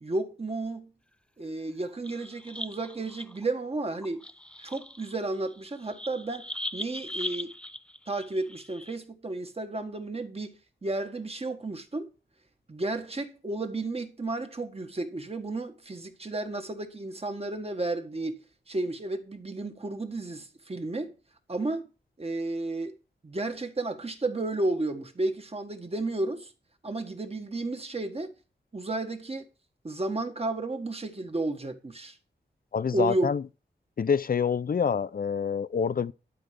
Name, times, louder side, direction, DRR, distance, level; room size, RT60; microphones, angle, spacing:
voice 1, 0.0-0.9 1.4-4.3 4.6-6.4 6.7-7.5 8.1-12.1 12.7-18.4 18.7-21.1 21.5-21.8 22.2-23.0 23.2-26.5 26.8-28.3 28.7-29.4 29.8-32.2 32.9-33.3, right 2 dB, 30° right, 1.5 m, -32 dB
sound 1, 1.9-3.4 3.9-9.0, left 1 dB, 5° left, 0.5 m, -40 dB
voice 2, 32.7-33.4 34.0-36.1, left 6 dB, 50° left, 0.5 m, -26 dB
12.0 x 4.6 x 6.8 m
wide cardioid pair, 100°, 19 cm